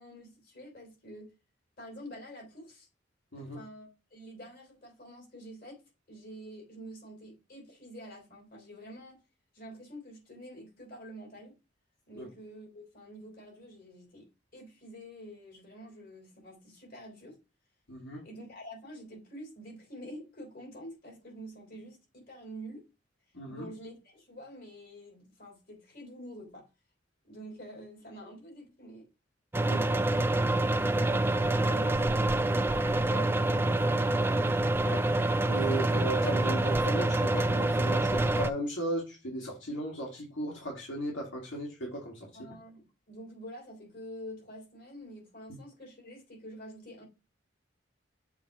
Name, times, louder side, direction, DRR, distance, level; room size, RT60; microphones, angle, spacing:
voice 1, 0.0-1.3 1.8-2.9 3.4-5.8 6.1-9.2 9.5-11.6 12.1-14.3 14.5-17.4 18.2-22.9 23.5-26.7 27.2-29.1 29.6-30.1 42.3-47.0, equal, 50° left, 3.3 m, -47 dB
voice 2, 17.9-18.2 23.3-23.7 29.7-29.8 34.8-42.5, right 1 dB, 85° left, 1.9 m, -36 dB
sound 1, 29.5-38.5, right 2 dB, 10° right, 0.3 m, -26 dB
7.1 x 2.9 x 4.7 m
head